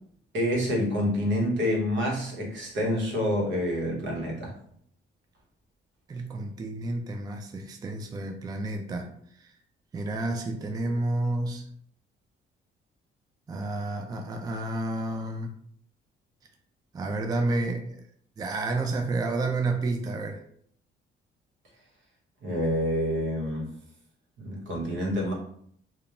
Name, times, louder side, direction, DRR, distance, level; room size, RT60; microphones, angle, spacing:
voice 1, 0.3-4.6 22.4-23.7 24.4-25.3, equal, 70° right, -2 dB, 1.0 m, -27 dB
voice 2, 6.1-9.5 9.9-11.7 13.5-15.5 16.9-18.0 18.4-20.4, right 2 dB, 20° right, 4 dB, 0.3 m, -30 dB
2.9 x 2.2 x 2.4 m, 0.64 s
cardioid pair, 90°, 20 cm